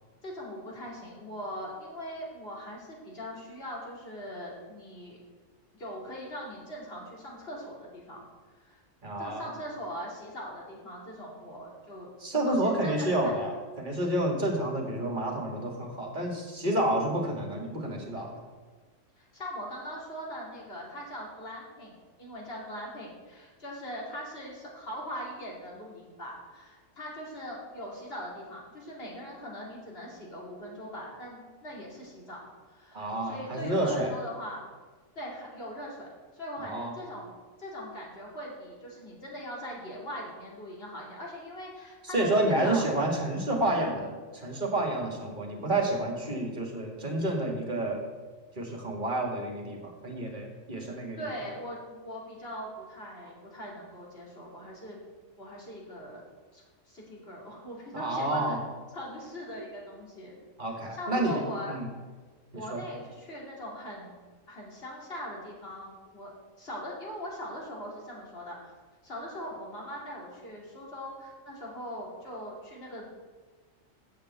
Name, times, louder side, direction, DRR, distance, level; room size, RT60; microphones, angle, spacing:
voice 1, 0.2-5.2 5.7-8.3 8.6-8.8 9.2-13.3 19.2-21.9 22.2-34.6 35.1-36.1 36.3-37.3 37.6-42.8 51.2-55.0 55.4-56.2 56.5-58.6 58.9-60.4 60.9-61.8 62.5-64.1 64.5-68.7 69.0-73.0, equal, 50° left, -3 dB, 2.9 m, -41 dB
voice 2, 9.0-9.5 12.2-18.4 32.9-34.1 36.6-36.9 42.1-48.1 48.6-51.3 57.9-58.6 60.6-61.9 62.5-62.8, right 1 dB, 40° right, 1 dB, 2.1 m, -29 dB
7.7 x 6.7 x 8.0 m, 1.4 s
omnidirectional pair, 1.3 m